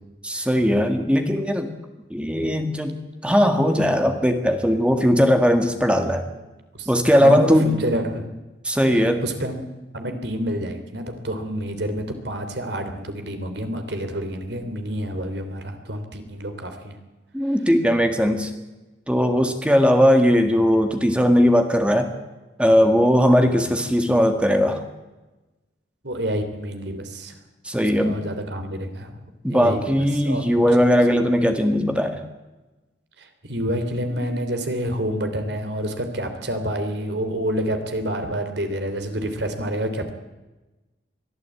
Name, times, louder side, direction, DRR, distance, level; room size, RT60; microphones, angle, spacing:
voice 1, 0.2-1.7 2.1-3.0 3.2-6.2 6.9-7.8 8.6-9.2 17.3-18.5 19.1-22.1 22.6-24.8 27.6-28.2 29.4-32.2, equal, 5° right, 6 dB, 1.7 m, -19 dB
voice 2, 6.7-8.3 8.9-9.6 9.9-17.0 26.0-27.3 27.7-29.1 29.5-30.4 33.2-40.1, equal, 65° right, 7 dB, 3.2 m, -28 dB
22.5 x 14.0 x 8.5 m, 1.1 s
head